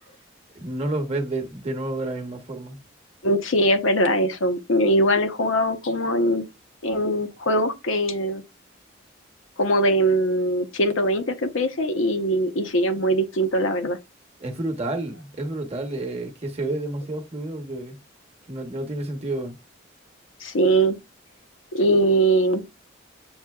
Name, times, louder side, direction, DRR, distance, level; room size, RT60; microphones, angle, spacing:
voice 1, 0.5-2.8 14.4-18.0 18.5-19.6, right 2 dB, 30° right, 0.8 m, -30 dB
voice 2, 3.2-6.4 6.8-8.4 9.6-14.0 20.4-21.0 21.7-22.6, right 1 dB, 85° left, 0.8 m, -21 dB
7.2 x 2.7 x 2.3 m
head